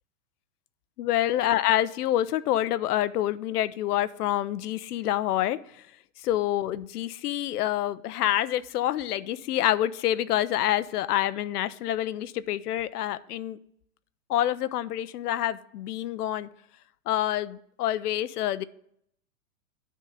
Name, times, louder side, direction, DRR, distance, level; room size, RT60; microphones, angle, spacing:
voice 1, 1.0-5.6 6.2-13.6 14.3-16.5 17.1-18.6, left 13 dB, 80° left, 15 dB, 0.6 m, -27 dB
9.3 x 3.6 x 6.6 m, 0.70 s
hypercardioid pair, 150°, 46 cm